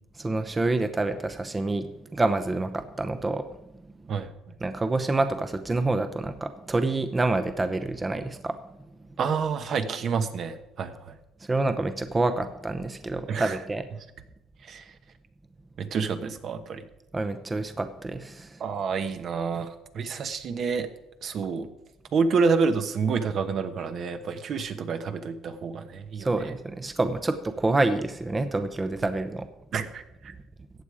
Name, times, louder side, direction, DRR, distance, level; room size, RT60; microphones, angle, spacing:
voice 1, 0.2-3.5 4.6-8.6 11.4-13.8 17.1-18.6 26.2-29.5, right 2 dB, 20° right, 8 dB, 0.8 m, -27 dB
voice 2, 9.2-11.1 13.3-13.6 14.7-14.8 15.8-16.8 18.6-20.9 21.2-21.7 22.1-26.3 29.7-30.3, right 5 dB, 55° right, 8 dB, 1.1 m, -28 dB
14.5 x 8.3 x 4.9 m, 0.89 s
cardioid pair, 90°, 0 cm